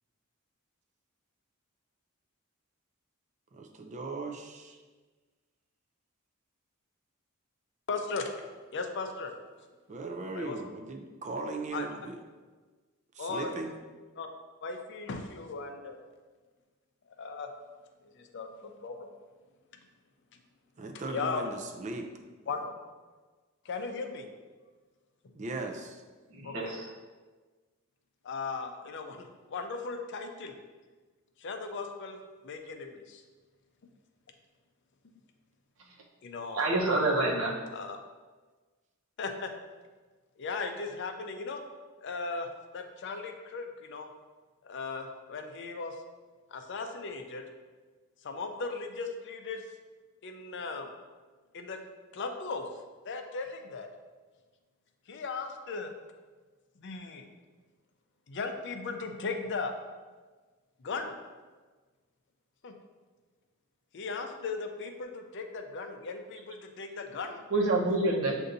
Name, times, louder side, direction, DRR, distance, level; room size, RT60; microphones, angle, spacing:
voice 1, 3.5-4.8 9.9-12.2 13.1-13.7 20.8-22.1 25.4-26.0, right 3 dB, 35° right, 0.4 m, -38 dB
voice 2, 7.9-9.3 10.3-10.6 11.7-11.9 13.2-13.6 14.2-14.3 14.6-16.0 17.2-17.5 18.0-19.1 21.1-21.4 22.5-22.7 23.6-24.3 26.4-26.7 28.2-30.6 31.4-32.2 32.4-33.2 36.2-36.6 37.7-38.0 39.2-39.5 40.4-41.6 42.0-42.5 42.7-44.1 44.6-46.0 46.5-47.4 48.2-49.7 50.2-50.9 51.5-51.8 52.1-52.7 53.0-53.9 55.1-55.9 56.8-57.3 58.3-59.7 60.8-61.1 62.6-62.7 63.9-67.4, left 4 dB, 55° left, 0.5 m, -37 dB
voice 3, 26.3-26.9 36.5-37.5 67.5-68.3, right 2 dB, 70° right, 0.9 m, -27 dB
7.8 x 2.6 x 2.6 m
head